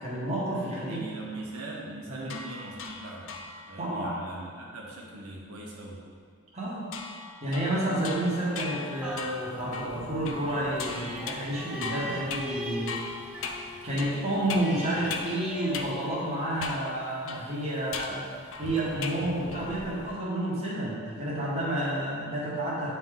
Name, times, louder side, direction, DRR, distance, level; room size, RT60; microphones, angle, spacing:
voice 1, 0.0-1.0 2.1-2.3 3.8-4.1 6.5-6.9 7.4-13.0 13.8-18.3 18.6-22.9, right 1 dB, 30° right, -6 dB, 1.3 m, -30 dB
voice 2, 0.9-3.3 3.7-6.0, right 2 dB, 80° right, -3 dB, 0.8 m, -41 dB
sound 1, 2.2-3.8 6.9-15.4 15.7-15.9 16.6-16.9 17.3-19.3 19.5-19.9, left 5 dB, 65° left, 0.4 m, -39 dB
Thunderstorm / Rain, 8.9-20.1, left 1 dB, 85° left, 0.8 m, -48 dB
sound 2, 9.0-16.9 17.4-17.5, equal, 5° right, 0.5 m, -41 dB
8.8 x 3.3 x 3.7 m, 2.1 s
head